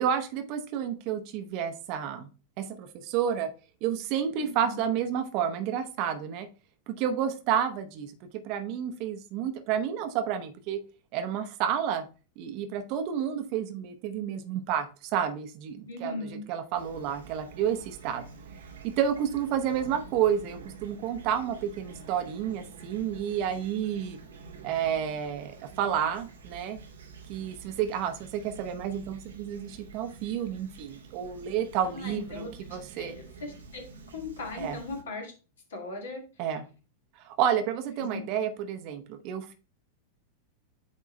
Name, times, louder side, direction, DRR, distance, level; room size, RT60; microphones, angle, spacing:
voice 1, 0.0-2.3 2.6-3.5 3.8-6.5 6.9-8.1 8.4-10.8 11.1-12.0 12.4-18.3 19.0-24.2 24.6-26.8 27.3-33.1 34.6-34.8 36.4-36.6 37.2-39.5, right 9 dB, 45° right, 8 dB, 0.9 m, -30 dB
voice 2, 4.3-4.8 15.9-16.4 31.8-32.5 33.0-33.8 34.1-35.3 35.7-36.2 38.0-38.2, left 3 dB, 65° left, 1 dB, 2.0 m, -38 dB
Fowl / Chirp tweet, 16.7-35.0, right 5 dB, 65° right, 1.0 m, -48 dB
8.4 x 3.7 x 3.1 m, 0.33 s
figure-of-eight pair, 90°, 0 cm